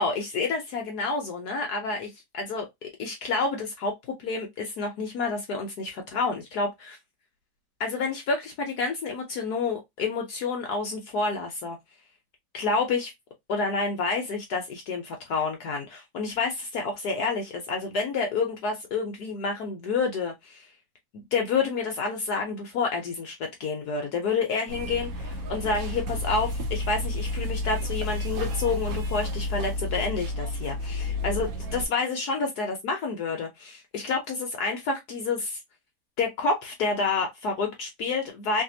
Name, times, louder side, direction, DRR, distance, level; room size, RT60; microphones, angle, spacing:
voice 1, 0.0-7.0 7.8-11.8 12.5-13.1 13.5-20.7 21.3-35.6 36.2-38.6, left 4 dB, 65° left, 1.1 m, -29 dB
sound 1, 24.7-31.9, left 1 dB, 60° right, 1.0 m, -31 dB
3.3 x 2.9 x 2.7 m
omnidirectional pair, 2.2 m